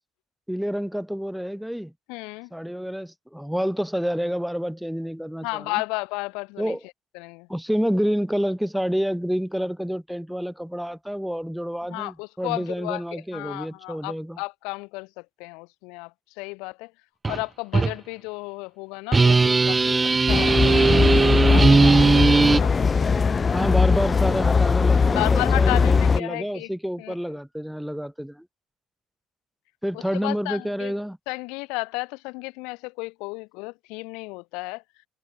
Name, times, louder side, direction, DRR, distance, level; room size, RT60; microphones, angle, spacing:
voice 1, 0.5-1.9 2.5-5.8 6.6-6.8 7.5-14.4 23.5-28.5 29.8-31.2, equal, ahead, 3.4 m, -28 dB
voice 2, 2.1-2.5 5.4-6.8 7.1-7.5 11.9-16.9 17.3-23.7 24.8-26.7 27.0-27.1 29.9-30.9 31.3-34.8, left 28 dB, 85° left, 2.7 m, -34 dB
sound 1, 17.2-17.4 17.7-17.9 19.1-22.6, right 4 dB, 20° right, 1.3 m, -18 dB
sound 2, 20.3-26.2, left 5 dB, 25° left, 0.3 m, -20 dB
cardioid pair, 110°, 0 cm